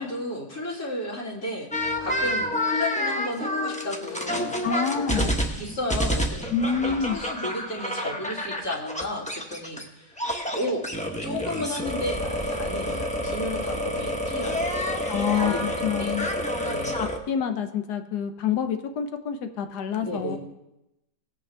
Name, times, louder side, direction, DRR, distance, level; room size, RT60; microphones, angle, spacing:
voice 1, 0.0-4.5 5.5-10.2 10.5-10.8 11.2-14.7 15.3-16.2 16.6-17.0 20.0-20.4, left 1 dB, 55° left, -7 dB, 3.3 m, -33 dB
sound 1, 1.7-9.8 10.2-17.2, equal, 5° left, 0.6 m, -28 dB
voice 2, 4.6-5.3 6.5-7.2 15.1-16.3 17.0-20.4, left 7 dB, 70° left, 7 dB, 1.4 m, -27 dB
18.0 x 8.3 x 3.4 m, 0.92 s
omnidirectional pair, 1.9 m